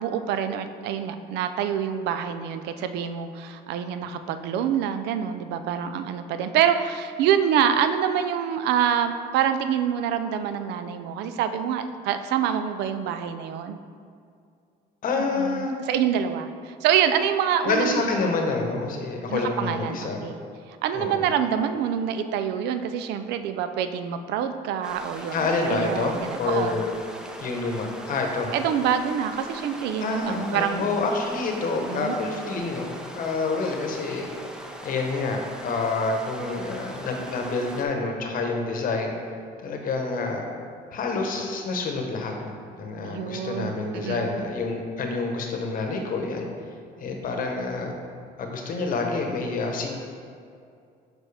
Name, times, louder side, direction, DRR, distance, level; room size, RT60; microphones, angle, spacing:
voice 1, 0.0-13.8 15.3-18.0 19.3-20.4 20.8-26.8 28.5-30.9 31.8-32.2 43.0-44.3, right 8 dB, 85° right, 9 dB, 0.4 m, -26 dB
voice 2, 15.0-15.7 17.6-20.2 20.9-21.3 25.3-26.1 26.4-26.9 27.4-28.5 30.0-34.3 34.8-39.1 39.6-40.4 40.9-46.5 47.0-47.9 48.4-49.9, left 3 dB, 55° left, 2 dB, 0.9 m, -27 dB
sound 1, 24.8-37.8, equal, 5° right, 0.5 m, -40 dB
6.8 x 4.4 x 3.3 m, 2.4 s
cardioid pair, 110°, 17 cm